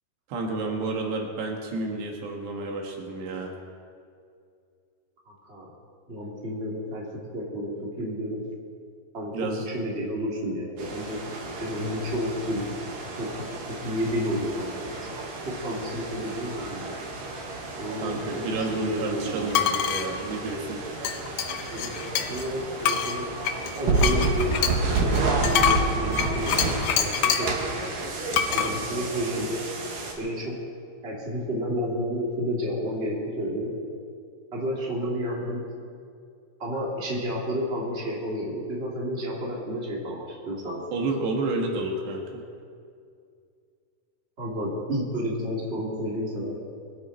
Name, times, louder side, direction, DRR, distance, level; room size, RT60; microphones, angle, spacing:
voice 1, 0.3-3.5 9.3-9.7 18.0-20.8 40.9-42.4, right 3 dB, 75° right, 1 dB, 3.6 m, -30 dB
voice 2, 5.3-5.6 6.1-7.0 7.3-8.4 9.1-11.2 11.6-12.7 13.2-13.3 13.8-15.0 15.6-16.9 17.8-18.2 18.7-19.7 21.7-23.3 23.7-24.5 25.0-27.6 28.5-29.6 30.2-30.5 31.0-33.7 34.5-35.6 36.6-40.8 44.4-46.6, equal, 15° right, -4 dB, 2.8 m, -31 dB
sound 1, 10.8-30.1, right 3 dB, 55° right, 3.2 m, -31 dB
sound 2, 19.5-20.1 21.0-22.5 22.8-27.6 28.3-28.7, left 9 dB, 75° left, 1.9 m, -26 dB
24.5 x 12.0 x 4.4 m, 2.3 s
omnidirectional pair, 5.0 m